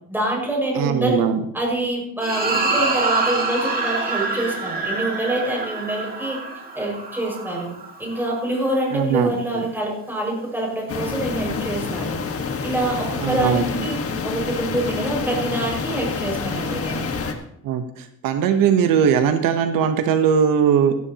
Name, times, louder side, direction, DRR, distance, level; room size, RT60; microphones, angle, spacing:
voice 1, 0.1-1.2 1.5-6.4 6.8-7.7 8.0-12.2 12.6-14.0 14.2-17.1, right 1 dB, 5° right, -2 dB, 5.6 m, -25 dB
voice 2, 0.7-1.4 8.9-9.7 13.2-13.9 17.6-21.0, right 7 dB, 85° right, 8 dB, 1.1 m, -20 dB
sound 1, 2.2-8.8, right 3 dB, 25° right, 2.2 m, -26 dB
sound 2, 10.9-17.3, left 5 dB, 45° left, 1.6 m, -27 dB
16.0 x 12.0 x 2.9 m, 0.73 s
cardioid pair, 125°, 33 cm